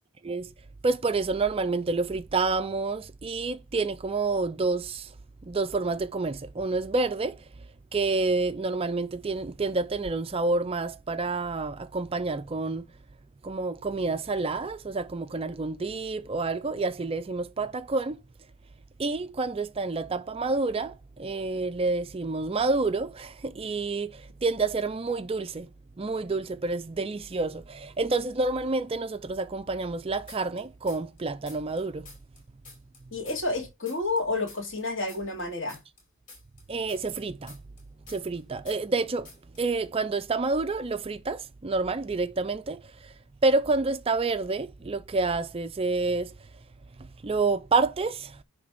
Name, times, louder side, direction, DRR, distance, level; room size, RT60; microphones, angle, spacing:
voice 1, 0.8-5.1 5.5-7.4 7.9-12.9 13.4-18.2 19.0-25.7 26.0-32.1 36.7-37.6 38.1-39.3 39.6-43.1 43.4-46.3 47.0-48.4, right 3 dB, 25° right, 0.4 m, -28 dB
sound 1, 30.3-31.2 31.5-34.2 34.5-38.4 38.7-39.0 39.3-39.6, left 4 dB, 40° left, 4.3 m, -50 dB
voice 2, 33.1-35.8, left 3 dB, 55° left, 2.7 m, -30 dB
10.0 x 3.4 x 5.9 m
head